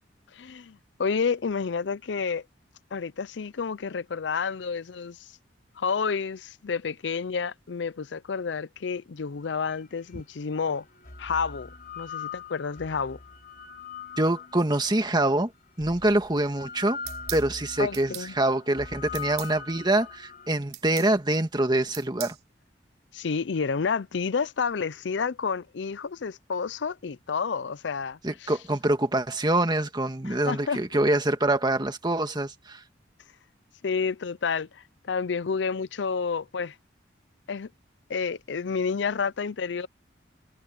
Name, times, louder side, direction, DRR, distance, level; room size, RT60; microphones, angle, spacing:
voice 1, 0.3-2.4 2.9-5.3 5.8-10.9 11.2-13.2 17.8-18.3 23.1-28.5 30.3-30.8 33.8-36.8 37.5-37.7 38.1-39.9, left 5 dB, 70° left, 0.5 m, -30 dB
sound 1, 9.7-9.8 10.8-15.0 15.8-20.5, left 5 dB, 50° left, 4.0 m, -41 dB
voice 2, 14.2-15.5 15.8-17.0 17.3-22.4 28.2-32.8, right 1 dB, 25° right, 1.8 m, -25 dB
sound 2, 17.1-17.5 17.9-18.3 19.1-19.5 20.7-21.1 21.9-22.4, right 13 dB, 60° right, 3.4 m, -38 dB
head